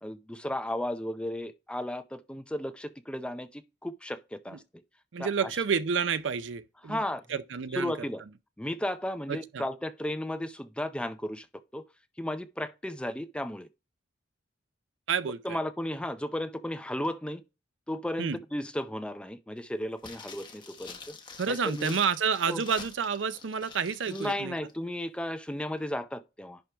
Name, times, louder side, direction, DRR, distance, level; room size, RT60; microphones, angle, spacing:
voice 1, 0.0-4.6 5.2-5.6 6.8-7.2 7.7-8.2 8.6-11.5 11.7-11.8 12.2-13.7 15.4-17.4 17.9-21.2 21.5-22.0 22.5-22.6 24.1-26.6, left 1 dB, 5° left, 0.5 m, -34 dB
voice 2, 5.1-7.0 7.3-7.9 9.3-9.6 15.1-15.6 18.2-18.4 21.4-24.6, right 6 dB, 70° right, 0.5 m, -29 dB
sound 1, 20.0-24.4 24.7-24.8, left 4 dB, 25° left, 1.3 m, -47 dB
10.5 x 4.4 x 3.4 m
head